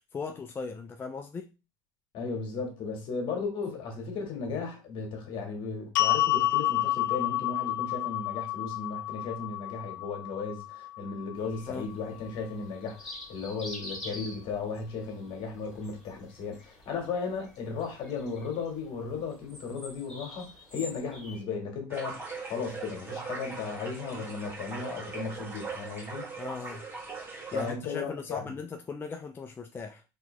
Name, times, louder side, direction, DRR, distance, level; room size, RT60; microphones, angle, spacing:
voice 1, 0.0-1.5 11.7-11.9 26.4-26.9 27.5-30.0, left 4 dB, 20° left, 0.4 m, -38 dB
voice 2, 2.1-26.2 27.5-28.5, left 5 dB, 55° left, 1.6 m, -35 dB
sound 1, 6.0-12.2, left 15 dB, 80° left, 0.5 m, -30 dB
sound 2, 11.4-21.4, left 2 dB, ahead, 2.1 m, -47 dB
sound 3, 21.9-27.7, right 4 dB, 20° right, 1.5 m, -40 dB
3.7 x 2.9 x 3.2 m
supercardioid pair, 95°, 10 cm